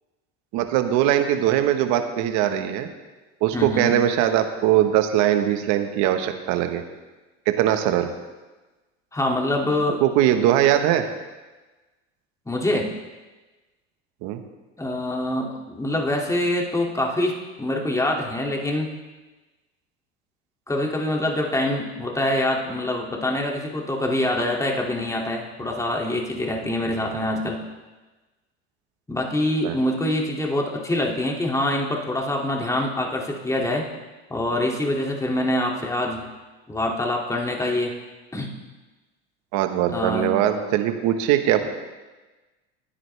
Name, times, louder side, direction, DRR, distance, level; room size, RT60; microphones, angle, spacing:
voice 1, 0.5-2.9 3.4-6.8 7.5-8.1 10.0-11.0 14.2-14.4 29.6-29.8 39.5-41.7, right 11 dB, 60° right, 7 dB, 1.3 m, -21 dB
voice 2, 3.5-3.9 9.1-10.0 12.5-12.9 14.8-18.9 20.7-27.6 29.1-33.9 34.3-36.2 36.7-37.9 38.3-38.5 39.9-40.3, left 1 dB, 10° left, 0 dB, 2.5 m, -25 dB
20.5 x 9.8 x 3.4 m, 1.2 s
supercardioid pair, 100°, 32 cm